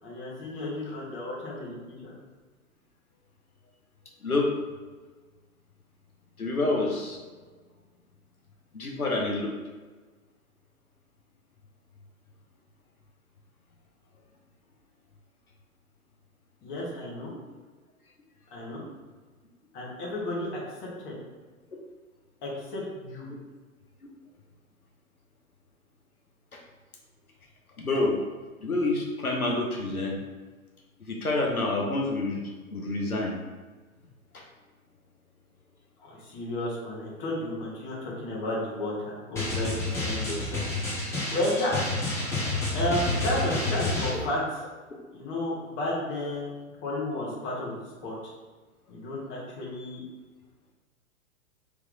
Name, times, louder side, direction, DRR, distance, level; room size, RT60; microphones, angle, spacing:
voice 1, 0.0-2.1 16.6-17.3 18.5-18.8 19.7-20.5 21.0-21.1 22.4-23.3 36.0-40.6 41.3-41.7 42.7-44.4 45.1-46.5 46.8-47.8 48.0-48.3 48.9-50.0, left 1 dB, 25° left, -5 dB, 1.4 m, -32 dB
voice 2, 6.4-7.2 8.7-9.5 27.8-28.1 28.6-30.2 31.1-33.4 34.3-34.4, left 2 dB, 90° left, -1 dB, 0.8 m, -28 dB
Drum, 39.4-44.1, left 2 dB, 5° left, 0.8 m, -29 dB
3.4 x 3.0 x 3.8 m, 1.3 s
figure-of-eight pair, 110°, 43 cm